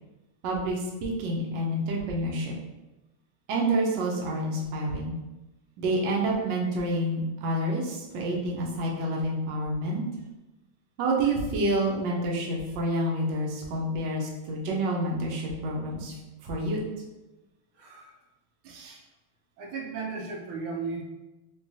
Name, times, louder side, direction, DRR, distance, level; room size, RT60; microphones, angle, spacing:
voice 1, 0.4-2.6 3.5-5.2 5.8-10.0 11.0-16.1 16.4-16.8, right 1 dB, 70° right, -2 dB, 1.2 m, -28 dB
voice 2, 17.8-18.1 18.6-19.0 19.6-21.0, right 4 dB, 90° right, 0 dB, 1.5 m, -36 dB
3.8 x 2.8 x 2.6 m, 1.0 s
omnidirectional pair, 2.3 m